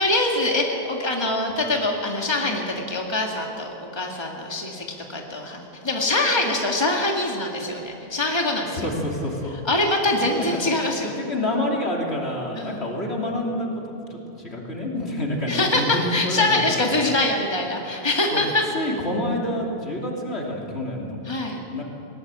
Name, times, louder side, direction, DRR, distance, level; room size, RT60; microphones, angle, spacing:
voice 1, 0.0-8.9 9.5-11.1 12.5-12.9 15.5-18.7 21.2-21.6, left 2 dB, 25° left, 0 dB, 2.1 m, -24 dB
voice 2, 8.7-9.6 10.4-10.5 11.0-16.4 18.3-18.4 18.7-21.2 21.7-21.8, left 1 dB, 75° left, -2 dB, 3.4 m, -28 dB
20.0 x 19.0 x 8.3 m, 2.9 s
omnidirectional pair, 1.1 m